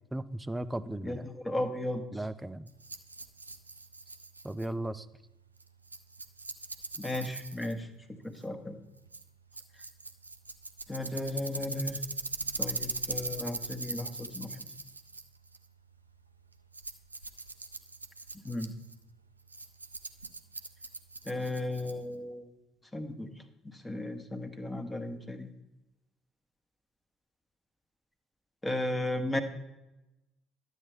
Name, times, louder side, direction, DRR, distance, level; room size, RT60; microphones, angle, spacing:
voice 1, 0.1-1.3 2.1-2.6 4.4-5.0, right 1 dB, 10° right, 15 dB, 0.5 m, -36 dB
voice 2, 1.0-2.0 7.0-7.9 8.2-8.8 10.9-12.0 12.6-14.6 18.4-18.7 21.3-22.4 22.9-23.3 23.6-25.5 28.6-29.4, left 1 dB, 15° left, 7 dB, 1.1 m, -35 dB
Rattle, 2.7-22.2, right 3 dB, 90° right, 0.3 m, -41 dB
12.0 x 8.1 x 3.3 m, 0.96 s
figure-of-eight pair, 55°, 0 cm